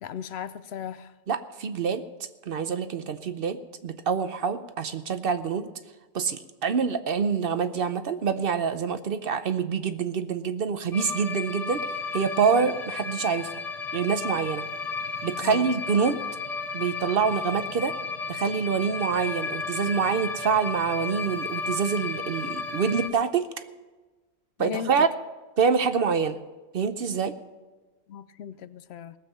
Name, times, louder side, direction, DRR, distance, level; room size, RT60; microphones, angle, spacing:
voice 1, 0.0-1.1 12.5-12.7 15.4-15.7 24.6-24.9 28.1-29.2, left 8 dB, 65° left, 14 dB, 0.8 m, -36 dB
voice 2, 1.3-2.0 2.5-5.7 6.1-11.8 12.1-13.6 13.9-14.6 15.2-16.2 16.7-17.9 18.3-23.7 24.6-25.1 25.6-26.4 26.7-27.3, right 6 dB, 55° right, 11 dB, 0.9 m, -26 dB
sound 1, 10.9-23.1, left 4 dB, 35° left, 1.1 m, -33 dB
18.0 x 7.3 x 6.8 m, 1.2 s
omnidirectional pair, 1.2 m